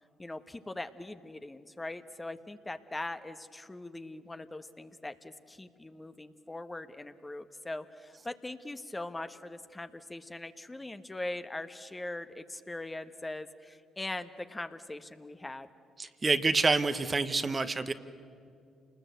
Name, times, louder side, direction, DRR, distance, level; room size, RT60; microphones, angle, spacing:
voice 1, 0.2-15.7, left 2 dB, 20° left, 9 dB, 1.2 m, -41 dB
voice 2, 16.0-17.9, right 3 dB, 35° right, 10 dB, 1.1 m, -27 dB
28.5 x 20.0 x 8.0 m, 2.4 s
hypercardioid pair, 55°, 0 cm